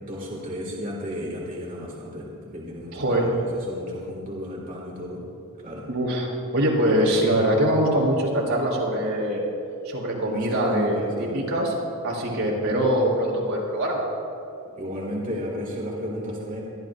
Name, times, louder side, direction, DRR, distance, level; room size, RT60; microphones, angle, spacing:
voice 1, 0.0-5.2 5.6-5.9 10.3-11.4 14.8-16.6, equal, 40° right, -3 dB, 2.0 m, -33 dB
voice 2, 2.9-3.3 5.9-9.4 9.8-11.7 12.0-14.1, right 1 dB, 80° right, -3 dB, 3.2 m, -23 dB
23.5 x 12.5 x 2.5 m, 2.8 s
head